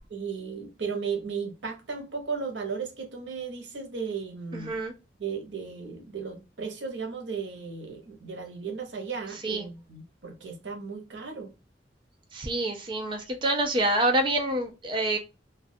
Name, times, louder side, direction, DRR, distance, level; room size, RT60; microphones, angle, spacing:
voice 1, 0.1-4.8 5.2-11.5, right 5 dB, 90° right, 0.7 m, -35 dB
voice 2, 4.5-4.9 9.4-9.7 12.3-15.2, right 1 dB, 30° right, 0.4 m, -27 dB
2.2 x 2.2 x 2.6 m
head